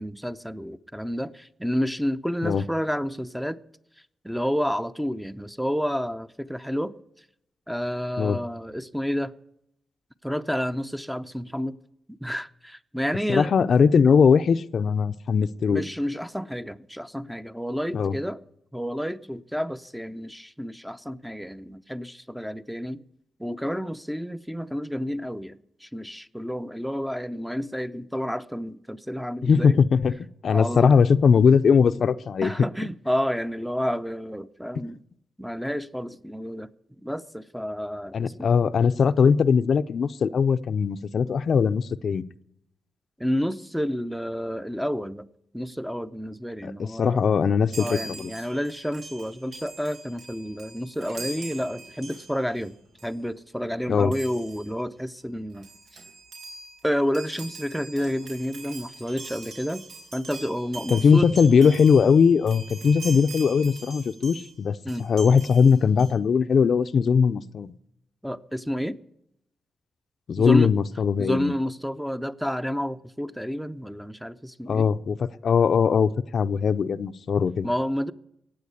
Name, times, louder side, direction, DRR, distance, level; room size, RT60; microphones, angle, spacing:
voice 1, 0.0-3.6 4.2-6.9 7.7-9.3 10.2-11.8 12.2-13.5 15.7-18.4 18.7-23.0 23.4-29.8 30.5-30.9 32.4-35.0 35.4-36.7 37.0-38.5 43.2-45.3 45.5-47.2 47.8-52.8 53.0-55.7 56.8-59.8 60.1-61.3 64.8-65.1 68.2-69.0 70.4-70.7 71.2-74.9 77.6-78.1, equal, ahead, 0.6 m, -30 dB
voice 2, 13.3-15.8 17.9-18.2 29.4-30.1 30.4-32.5 38.1-42.2 46.6-48.3 53.9-54.1 60.9-67.7 70.3-71.5 74.7-77.7, left 6 dB, 60° left, 0.6 m, -20 dB
Chime, 47.7-52.7 53.0-53.2 54.1-54.7 55.3-55.4 55.5-64.5 64.9-66.1, right 3 dB, 90° right, 3.7 m, -42 dB
15.5 x 9.2 x 8.1 m
cardioid pair, 90°, 0 cm